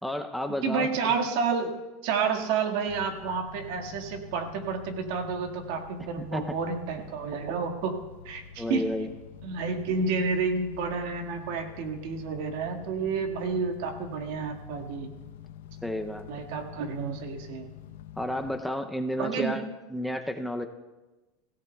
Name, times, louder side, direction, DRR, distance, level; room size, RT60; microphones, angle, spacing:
voice 1, 0.0-1.1 6.2-6.6 8.6-9.1 15.8-16.5 18.2-20.7, left 1 dB, ahead, 5 dB, 0.5 m, -32 dB
voice 2, 0.6-1.8 2.0-8.0 8.3-8.8 9.4-15.1 16.3-17.7 19.2-19.6, right 5 dB, 65° right, 4 dB, 1.8 m, -30 dB
sound 1, 2.9-18.6, left 9 dB, 90° left, 0.7 m, -46 dB
25.5 x 16.0 x 2.3 m, 1.1 s
supercardioid pair, 150°, 0 cm